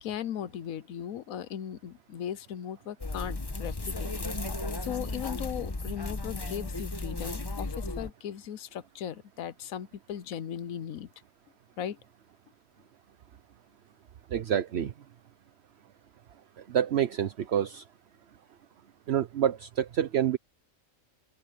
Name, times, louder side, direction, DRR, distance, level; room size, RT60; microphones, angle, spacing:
voice 1, 0.0-4.1 4.8-11.1 11.8-12.0, left 9 dB, 85° left, 1.2 m, -37 dB
sound 1, 3.0-8.1, left 2 dB, 20° left, 1.0 m, -35 dB
voice 2, 14.3-14.9 16.6-17.8 19.1-20.4, right 9 dB, 55° right, 1.0 m, -27 dB
open air
omnidirectional pair, 1.4 m